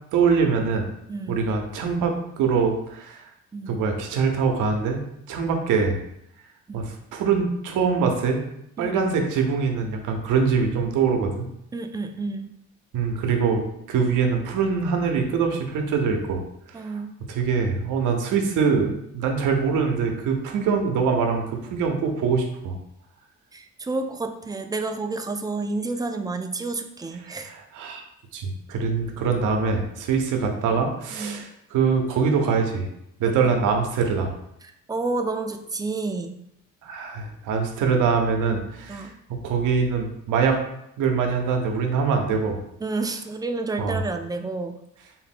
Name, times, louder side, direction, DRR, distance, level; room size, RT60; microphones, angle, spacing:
voice 1, 0.1-0.9 1.3-3.3 3.7-5.0 5.3-6.0 6.7-8.4 8.8-11.5 12.9-13.6 13.9-16.4 16.7-16.9 17.3-22.8 27.2-28.0 28.3-32.9 33.2-34.3 36.8-39.1 39.4-40.6 41.0-42.6 43.8-44.0, right 5 dB, 90° right, 3 dB, 0.7 m, -23 dB
voice 2, 1.1-1.4 3.5-3.8 6.7-6.8 8.8-9.0 11.7-12.5 16.7-17.1 23.5-27.5 31.1-31.4 33.3-33.4 34.6-36.4 38.9-39.1 42.8-44.8, right 3 dB, 15° right, 6 dB, 0.3 m, -30 dB
3.9 x 2.1 x 4.1 m, 0.79 s
cardioid pair, 90°, 30 cm